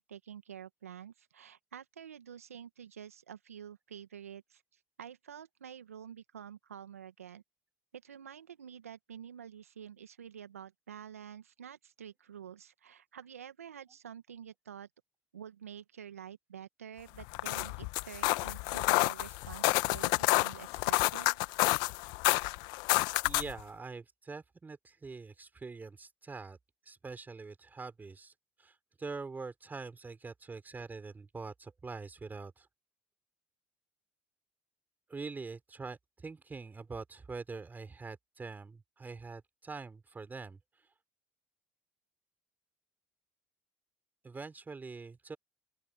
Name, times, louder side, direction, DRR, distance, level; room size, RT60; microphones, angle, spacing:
voice 1, 0.0-4.6 5.0-7.4 7.9-14.9 15.3-21.4, right 8 dB, 90° right, 1.6 m, -48 dB
sound 1, 17.2-23.6, left 24 dB, 65° left, 1.2 m, -29 dB
voice 2, 23.2-26.6 26.8-28.3 28.6-32.7 35.1-40.9 44.2-45.4, right 4 dB, 25° right, 4.3 m, -44 dB
open air
hypercardioid pair, 65°, 8 cm